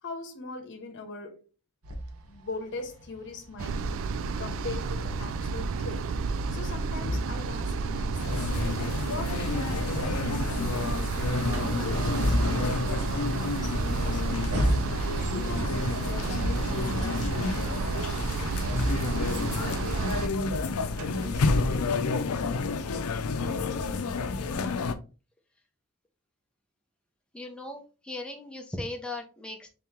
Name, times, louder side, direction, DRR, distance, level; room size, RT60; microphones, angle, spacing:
voice 1, 0.0-1.4 2.3-4.1 4.4-6.1 6.5-8.5 9.0-11.2 11.5-18.2, left 3 dB, 55° left, 0.9 m, -41 dB
sound 1, 1.8-21.8, equal, 80° right, 0.9 m, -35 dB
sound 2, 3.6-20.3, right 4 dB, 65° right, 0.4 m, -31 dB
sound 3, 8.2-24.9, left 4 dB, 85° left, 0.5 m, -30 dB
voice 2, 27.3-29.7, left 2 dB, 5° left, 0.6 m, -38 dB
3.9 x 2.9 x 3.6 m
head